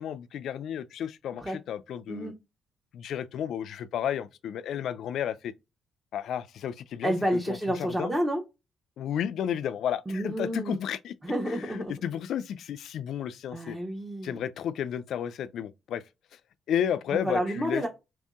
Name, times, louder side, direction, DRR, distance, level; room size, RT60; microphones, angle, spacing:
voice 1, 0.0-2.3 2.9-5.5 6.1-8.1 9.0-11.1 11.5-13.8 14.2-16.0 16.7-17.8, left 9 dB, 75° left, 0.3 m, -32 dB
voice 2, 7.0-8.4 10.1-10.8 11.2-11.9 13.5-14.4 17.1-17.9, right 1 dB, 10° right, 0.8 m, -29 dB
3.0 x 2.7 x 3.5 m
cardioid pair, 90°, 0 cm